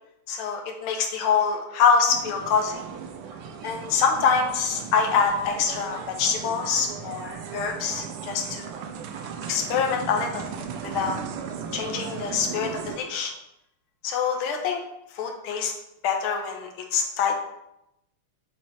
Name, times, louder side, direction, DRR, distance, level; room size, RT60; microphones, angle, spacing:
voice 1, 0.3-2.8 3.6-8.7 9.5-10.5 10.8-11.2 11.7-13.3 14.0-14.8 15.1-15.7 16.0-17.4, left 6 dB, 80° left, 2 dB, 1.6 m, -25 dB
sound 1, 2.1-13.0, right 7 dB, 85° right, 1.5 m, -36 dB
7.4 x 3.1 x 4.2 m, 0.84 s
omnidirectional pair, 2.4 m